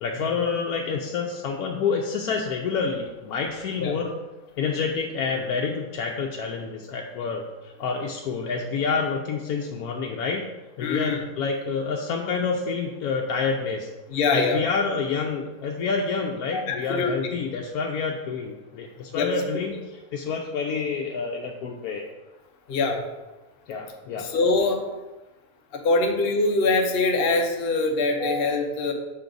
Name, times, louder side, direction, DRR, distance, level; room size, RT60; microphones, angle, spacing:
voice 1, 0.0-4.1 4.6-10.4 10.8-13.9 14.3-19.8 20.1-22.1 23.7-24.3, left 5 dB, 80° left, 0 dB, 1.1 m, -28 dB
voice 2, 10.8-11.2 14.1-14.6 16.5-17.4 19.1-19.3 22.7-23.0 24.2-24.8 25.7-28.9, left 3 dB, 50° left, 2 dB, 0.7 m, -23 dB
6.4 x 4.6 x 3.9 m, 1.1 s
omnidirectional pair, 1.6 m